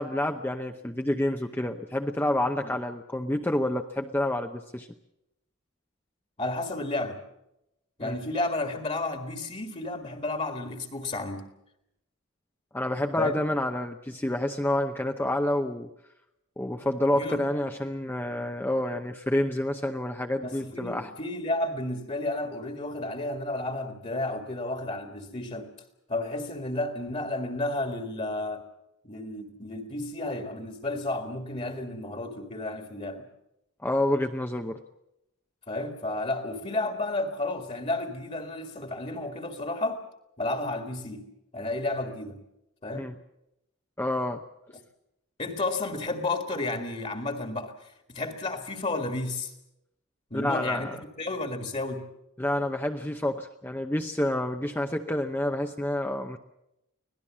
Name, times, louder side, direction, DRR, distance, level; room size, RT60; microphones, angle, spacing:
voice 1, 0.0-4.9 8.0-8.2 12.7-15.9 16.6-21.1 33.8-34.8 42.9-43.1 44.0-44.4 50.3-50.9 52.4-56.4, left 1 dB, 10° left, 4 dB, 0.7 m, -28 dB
voice 2, 6.4-7.2 8.0-11.5 13.2-13.4 17.1-17.4 20.4-25.7 26.1-28.7 29.0-33.3 35.7-40.0 40.4-42.4 42.8-43.1 45.4-49.5 50.3-50.9 51.2-52.0, left 2 dB, 30° left, 6 dB, 1.8 m, -32 dB
25.0 x 17.5 x 7.4 m, 0.85 s
head